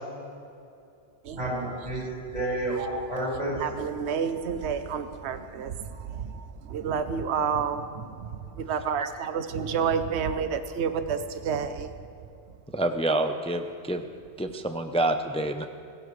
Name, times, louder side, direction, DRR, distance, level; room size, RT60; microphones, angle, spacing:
voice 1, 1.4-3.5, right 1 dB, 35° right, -5 dB, 5.4 m, -30 dB
voice 2, 3.6-11.9, right 6 dB, 70° right, 9 dB, 1.0 m, -30 dB
voice 3, 12.7-14.1 14.4-15.7, right 1 dB, 5° left, 7 dB, 0.6 m, -27 dB
26.5 x 15.5 x 3.2 m, 2.5 s
omnidirectional pair, 1.2 m